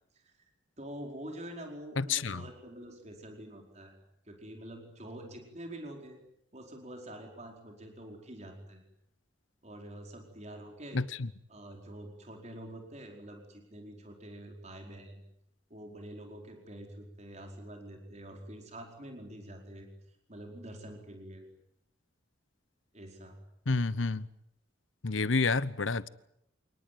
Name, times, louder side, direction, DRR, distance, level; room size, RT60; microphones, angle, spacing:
voice 1, 0.1-0.5 0.8-4.0 4.3-6.2 6.5-8.8 9.6-11.0 11.5-15.2 15.7-19.9 20.3-21.4 22.9-23.4, right 1 dB, 35° right, 4.8 m, -46 dB
voice 2, 2.0-2.4 10.9-11.3 23.7-24.3 25.0-26.1, left 4 dB, 85° left, 1.0 m, -29 dB
27.5 x 19.5 x 9.5 m
head